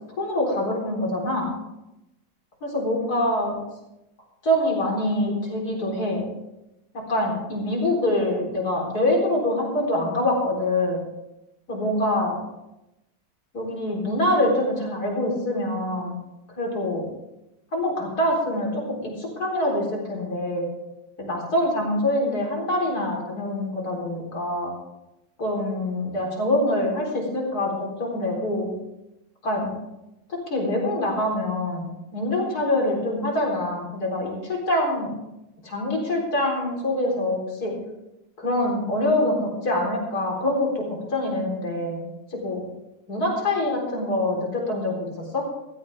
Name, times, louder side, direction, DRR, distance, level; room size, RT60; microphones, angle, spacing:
voice 1, 0.2-1.5 2.6-3.6 4.4-6.3 6.9-11.0 11.7-12.4 13.5-16.2 16.6-17.1 17.7-20.7 21.2-24.7 25.4-28.7 29.4-29.7 30.3-35.1 35.6-37.7 38.4-42.0 42.3-42.6 43.1-45.4, left 1 dB, 50° left, -1 dB, 4.5 m, -25 dB
16.0 x 14.5 x 3.6 m, 0.93 s
omnidirectional pair, 2.1 m